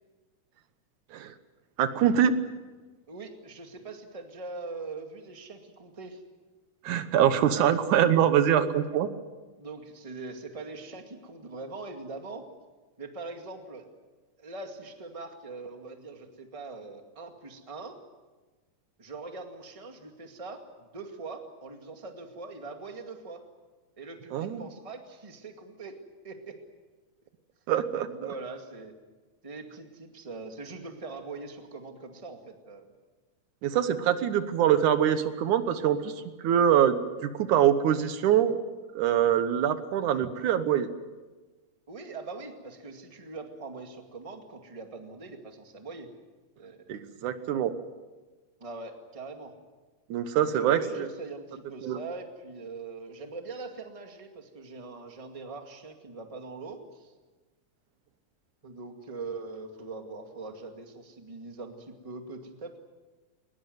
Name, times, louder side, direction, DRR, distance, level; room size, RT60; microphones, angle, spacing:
voice 1, 1.8-2.4 6.8-9.1 24.3-24.7 27.7-28.1 33.6-38.6 39.0-40.9 46.9-47.8 50.1-51.1 51.8-52.0, right 9 dB, 75° right, 11 dB, 2.4 m, -24 dB
voice 2, 3.1-6.2 9.6-12.5 13.0-13.9 14.4-18.0 19.0-23.4 24.0-26.0 26.2-26.6 28.1-28.9 29.4-32.9 41.9-46.1 46.6-46.9 48.6-49.5 50.4-57.1 58.6-62.8, right 3 dB, 15° right, 4 dB, 1.7 m, -42 dB
21.5 x 20.5 x 9.4 m, 1.2 s
omnidirectional pair, 3.6 m